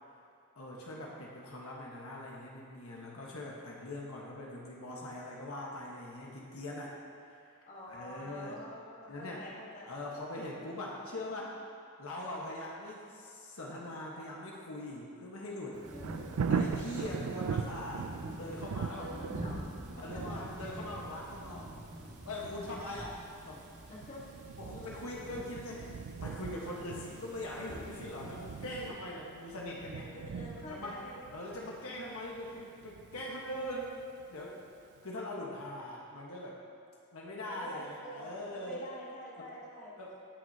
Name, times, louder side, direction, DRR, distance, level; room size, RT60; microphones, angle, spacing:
voice 1, 0.6-7.0 7.2-7.4 7.9-8.6 9.1-9.4 9.9-11.6 12.0-15.8 16.5-18.1 18.3-19.1 20.0-21.7 22.2-23.6 24.6-30.1 30.7-31.0 31.3-34.5 35.0-36.6 37.1-38.9 39.4-39.5 40.0-40.3, left 1 dB, 70° left, -3 dB, 1.3 m, -42 dB
voice 2, 7.7-10.0 15.9-16.4 19.0-19.6 20.0-20.5 23.9-24.3 24.7-25.4 30.1-31.2 37.5-40.0, equal, 35° left, -4 dB, 1.4 m, -47 dB
Thunder, 15.7-34.5 35.0-35.1, right 6 dB, 75° right, 0.4 m, -41 dB
sound 1, 15.8-28.9, right 1 dB, 35° right, 1.5 m, -47 dB
18.0 x 6.2 x 2.8 m, 2.5 s
head